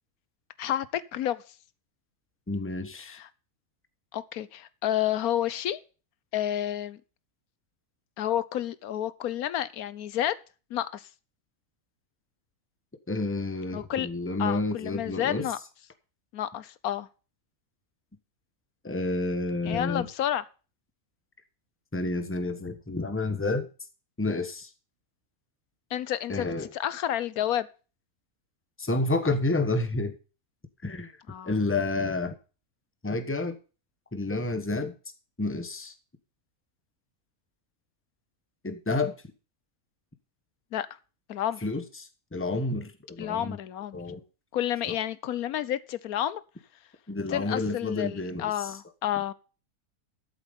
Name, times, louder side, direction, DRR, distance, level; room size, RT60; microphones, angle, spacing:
voice 1, 0.6-1.4 3.1-3.3 4.1-5.8 6.3-7.0 8.2-10.4 10.7-11.1 13.7-14.1 14.4-15.6 16.3-17.1 19.6-20.4 25.9-27.7 31.3-31.5 40.7-40.9 41.3-41.6 43.2-44.0 44.5-46.4 47.3-49.3, left 11 dB, 80° left, 1.3 m, -30 dB
voice 2, 2.5-3.2 13.1-15.5 18.8-20.1 21.9-23.7 24.2-24.7 26.3-26.7 28.8-30.1 30.8-31.1 31.4-32.3 33.0-33.6 34.1-34.9 35.4-35.9 38.6-39.2 41.6-41.8 42.3-43.6 43.9-44.2 44.9-45.0 47.1-48.7, left 2 dB, 10° left, 1.2 m, -29 dB
12.5 x 7.7 x 5.3 m
omnidirectional pair, 1.5 m